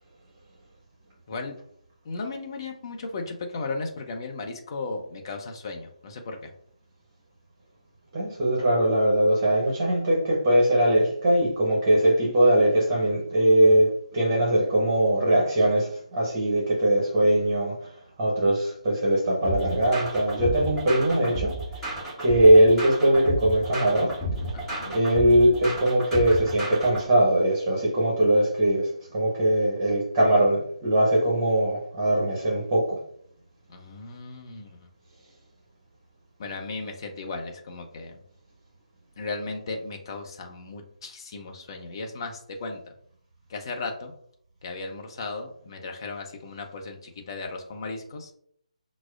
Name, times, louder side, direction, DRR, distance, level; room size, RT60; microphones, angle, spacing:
voice 1, 2.0-6.5 16.6-16.7 24.5-24.9 33.7-34.9 36.4-38.1 39.2-42.8 43.5-44.1 44.6-48.3, left 3 dB, 40° left, 3 dB, 0.7 m, -36 dB
voice 2, 8.1-21.9 22.2-24.1 24.9-33.0, right 1 dB, 25° right, -4 dB, 1.0 m, -21 dB
sound 1, 19.4-27.1, right 1 dB, 5° left, 1.4 m, -32 dB
5.9 x 2.0 x 2.3 m, 0.65 s
figure-of-eight pair, 145°, 4 cm